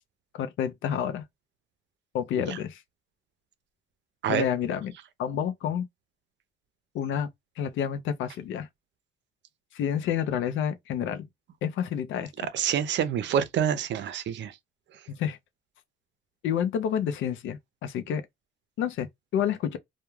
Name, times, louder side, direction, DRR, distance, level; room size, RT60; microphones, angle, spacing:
voice 1, 0.3-1.2 2.1-2.8 4.3-4.9 5.2-5.9 6.9-7.3 7.6-8.7 9.7-11.3 11.6-12.5 15.1-15.4 16.4-18.2 18.8-19.1 19.3-19.8, left 9 dB, 80° left, 0.5 m, -29 dB
voice 2, 12.5-14.6, right 9 dB, 65° right, 0.5 m, -27 dB
2.3 x 2.1 x 3.1 m
cardioid pair, 90°, 20 cm